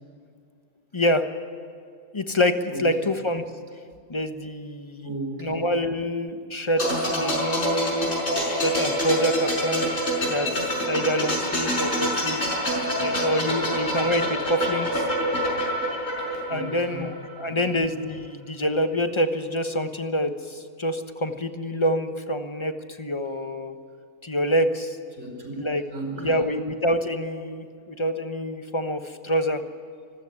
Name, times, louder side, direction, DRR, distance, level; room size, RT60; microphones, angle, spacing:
voice 1, 0.9-1.3 2.1-3.5 4.1-5.1 5.4-8.1 8.4-9.8 10.3-12.4 13.0-15.1 16.5-23.7 24.2-25.0 25.5-25.8 26.2-29.6, equal, 20° left, 8 dB, 1.2 m, -26 dB
voice 2, 2.7-3.1 5.0-5.7 12.7-13.0 13.6-13.7 16.5-17.2 17.5-17.6 25.1-26.4, right 2 dB, 55° right, 2 dB, 4.8 m, -36 dB
sound 1, 6.8-17.4 17.7-17.9, equal, 50° left, 5.9 m, -26 dB
25.5 x 15.0 x 9.8 m, 2.2 s
omnidirectional pair, 1.4 m